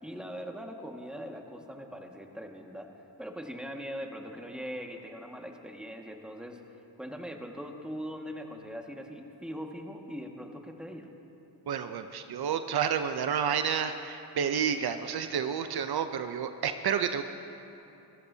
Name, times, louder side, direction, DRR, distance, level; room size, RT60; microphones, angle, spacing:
voice 1, 0.0-2.9 3.2-6.6 7.0-11.1, equal, ahead, 2 dB, 1.8 m, -41 dB
voice 2, 11.7-17.2, right 7 dB, 70° right, 8 dB, 0.7 m, -30 dB
26.0 x 15.5 x 2.8 m, 2.9 s
cardioid pair, 55°, 40 cm